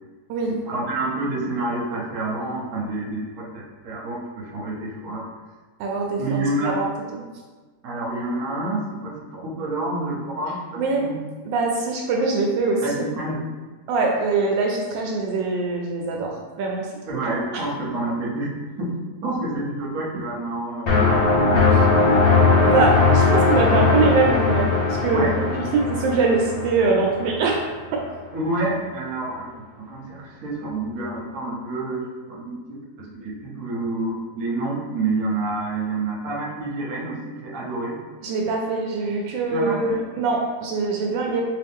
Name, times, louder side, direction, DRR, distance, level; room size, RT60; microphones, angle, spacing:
voice 1, 0.5-5.3 6.2-6.8 7.8-11.2 12.8-13.5 17.1-23.1 25.1-25.4 28.3-38.0 39.5-40.0 41.2-41.3, right 2 dB, 60° right, -3 dB, 1.2 m, -28 dB
voice 2, 5.8-7.2 10.8-11.1 11.5-13.0 13.9-16.9 17.3-17.6 21.7-21.9 22.6-25.4 25.7-28.0 38.2-41.4, right 3 dB, 80° right, 0 dB, 1.3 m, -23 dB
sound 1, 20.9-27.6, left 4 dB, 60° left, 0.6 m, -19 dB
3.7 x 3.0 x 3.5 m, 1.3 s
omnidirectional pair, 2.0 m